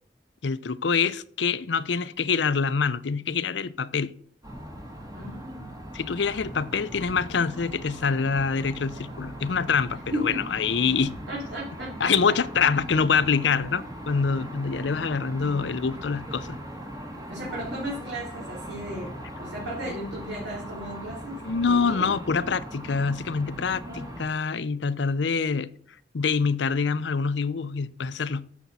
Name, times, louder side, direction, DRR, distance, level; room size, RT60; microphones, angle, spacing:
voice 1, 0.4-4.1 5.9-11.2 12.0-16.6 19.9-20.0 21.4-25.7 26.1-28.5, left 5 dB, 80° left, 0.6 m, -25 dB
sound 1, 4.4-24.3, right 1 dB, 20° right, 1.7 m, -39 dB
voice 2, 5.1-5.6 10.1-10.6 11.3-12.4 17.3-21.3 21.7-22.1 23.8-24.1, equal, 70° right, 3.5 m, -35 dB
12.0 x 7.1 x 4.1 m
head